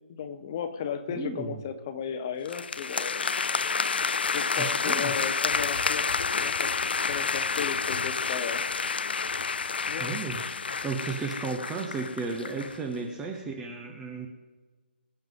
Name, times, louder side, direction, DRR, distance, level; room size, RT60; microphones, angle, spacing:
voice 1, 0.0-3.2 4.3-6.1 6.3-8.6 9.9-10.1, left 7 dB, 20° left, 11 dB, 0.8 m, -35 dB
voice 2, 1.1-1.6 4.6-5.1 10.0-10.4 10.7-14.3, right 4 dB, 5° right, 3 dB, 0.6 m, -34 dB
sound 1, 2.5-12.8, left 5 dB, 65° left, 0.5 m, -29 dB
23.0 x 7.8 x 3.7 m, 1.4 s
hypercardioid pair, 170°, 6 cm